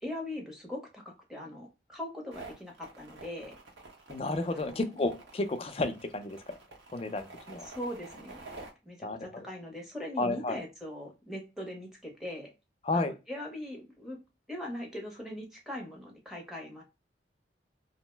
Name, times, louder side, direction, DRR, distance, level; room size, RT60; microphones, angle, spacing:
voice 1, 0.0-3.5 4.5-4.9 7.6-8.4 8.8-12.5 12.9-14.2 14.5-16.8, left 1 dB, ahead, 0.7 m, -41 dB
sound 1, 2.3-8.7, right 3 dB, 85° right, 1.0 m, -49 dB
voice 2, 4.1-6.6 6.9-7.7 9.0-9.5 10.2-10.6 12.8-13.1, left 2 dB, 30° left, 0.4 m, -32 dB
2.6 x 2.0 x 3.1 m
head